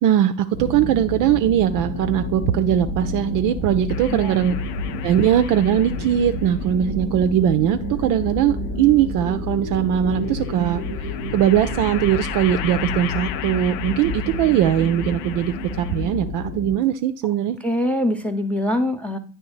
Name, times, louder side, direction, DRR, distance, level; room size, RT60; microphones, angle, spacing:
voice 1, 0.0-4.5 5.0-10.8 11.3-17.6, right 10 dB, 45° right, 9 dB, 0.4 m, -20 dB
sound 1, 0.5-16.7, left 1 dB, 90° left, 1.5 m, -29 dB
sound 2, 3.9-6.5 7.7-8.7 10.3-16.3, left 12 dB, 60° left, 0.5 m, -36 dB
voice 2, 17.6-19.2, left 1 dB, 5° left, 7 dB, 0.7 m, -23 dB
9.5 x 3.3 x 3.0 m, 0.36 s
figure-of-eight pair, 60°, 44 cm